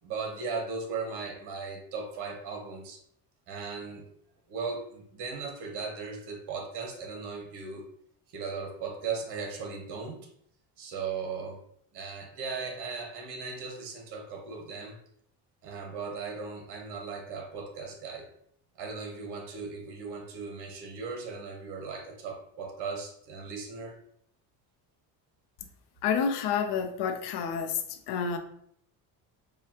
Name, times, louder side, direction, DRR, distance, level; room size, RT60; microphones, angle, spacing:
voice 1, 0.0-3.0 3.5-4.0 4.5-7.9 8.3-10.2 10.8-11.6 11.9-15.0 15.6-18.3 18.7-24.0, right 5 dB, 65° right, 3 dB, 1.1 m, -37 dB
voice 2, 26.0-27.8 28.1-28.4, left 6 dB, 65° left, 7 dB, 0.7 m, -29 dB
4.9 x 2.3 x 2.8 m, 0.67 s
cardioid pair, 105°, 43 cm